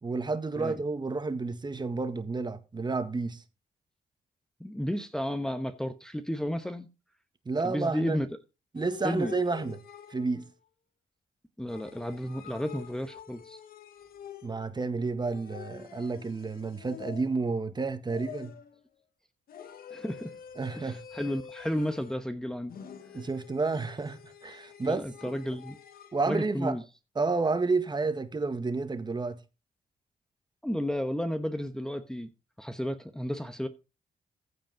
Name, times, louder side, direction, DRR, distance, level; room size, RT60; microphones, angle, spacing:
voice 1, 0.0-3.4 7.5-8.2 8.7-9.8 10.1-10.5 14.4-18.5 20.6-21.0 23.1-25.4 26.1-26.7 27.2-29.4, right 3 dB, 30° right, 1.7 m, -30 dB
voice 2, 4.6-6.9 7.6-8.3 9.0-9.3 11.6-13.6 19.9-20.3 20.7-22.7 24.8-25.8 26.3-26.8 30.6-32.3 32.6-33.7, equal, 5° left, 1.1 m, -32 dB
sound 1, 8.8-10.5 11.7-14.8 15.2-17.6 18.1-18.8 19.5-22.3 22.7-26.2, left 8 dB, 75° left, 1.6 m, -47 dB
15.0 x 5.2 x 5.0 m
cardioid pair, 85°, 15 cm